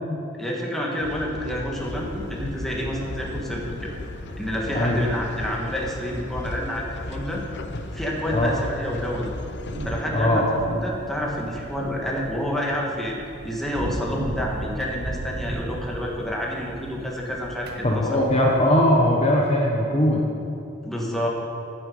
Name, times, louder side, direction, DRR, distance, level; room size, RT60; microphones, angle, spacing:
voice 1, 0.4-3.9 4.4-7.4 7.9-9.3 9.9-13.2 13.4-18.1 20.8-21.3, equal, ahead, -3 dB, 1.8 m, -29 dB
sound 1, 1.0-10.0, left 2 dB, 60° left, 0.7 m, -36 dB
sound 2, 1.7-18.7, right 1 dB, 55° right, 1.2 m, -38 dB
voice 2, 10.1-10.5 17.8-20.3, left 1 dB, 30° left, -1 dB, 1.1 m, -20 dB
9.6 x 9.0 x 7.8 m, 2.8 s
head